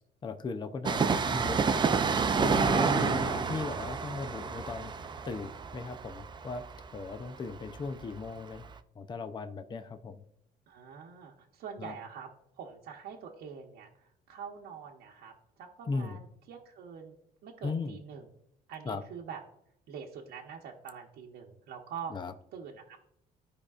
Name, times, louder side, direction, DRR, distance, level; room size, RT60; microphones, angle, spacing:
voice 1, 0.2-4.9 5.2-6.6 6.9-8.6 9.0-10.2 11.8-11.9 15.9-16.2 17.6-18.0 18.8-19.0 22.1-22.3, left 4 dB, 25° left, 8 dB, 0.6 m, -37 dB
Train, 0.8-8.3 8.5-8.6, right 5 dB, 25° right, 0.5 m, -29 dB
voice 2, 10.7-12.3 12.6-17.2 17.4-18.3 18.7-19.4 19.9-22.1 22.5-23.0, right 7 dB, 70° right, -1 dB, 1.0 m, -45 dB
14.5 x 5.1 x 2.4 m, 0.78 s
cardioid pair, 110°, 17 cm